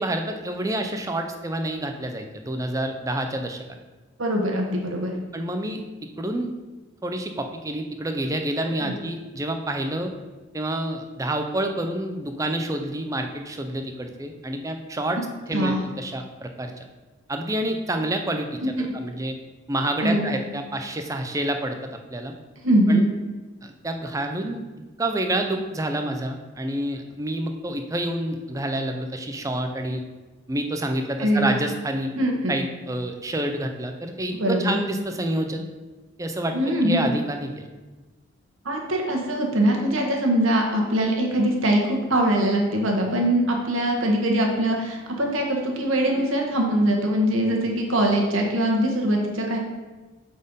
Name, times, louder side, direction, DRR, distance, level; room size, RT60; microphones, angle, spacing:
voice 1, 0.0-3.6 5.3-5.8 6.2-6.5 7.0-10.1 10.5-15.2 15.5-16.8 17.3-19.4 19.7-22.3 22.9-23.1 23.6-24.6 25.0-30.0 30.5-32.1 32.5-35.6 36.2-36.5 36.8-37.7, right 1 dB, 15° right, 5 dB, 0.4 m, -28 dB
voice 2, 4.2-5.1 8.6-8.9 15.5-15.8 18.6-18.8 20.0-20.3 22.6-23.0 31.2-31.6 32.1-32.5 34.4-34.8 36.5-37.1 38.6-49.6, right 1 dB, 75° right, 0 dB, 1.2 m, -22 dB
5.0 x 4.3 x 5.2 m, 1.2 s
head